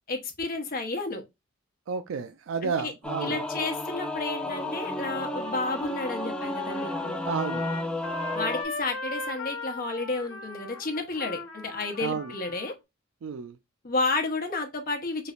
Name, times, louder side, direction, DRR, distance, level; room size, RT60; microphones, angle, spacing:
voice 1, 0.1-1.2 2.6-2.9 3.2-7.3 8.3-12.7 13.8-15.3, left 3 dB, 50° left, 0.9 m, -31 dB
voice 2, 1.9-3.4 7.2-7.7 12.0-12.3 13.2-13.5, right 6 dB, 85° right, 0.4 m, -31 dB
Singing / Musical instrument, 3.0-8.6, left 1 dB, 5° left, 0.4 m, -32 dB
Trumpet, 5.1-12.7, left 3 dB, 70° left, 0.8 m, -38 dB
3.3 x 3.1 x 2.4 m
head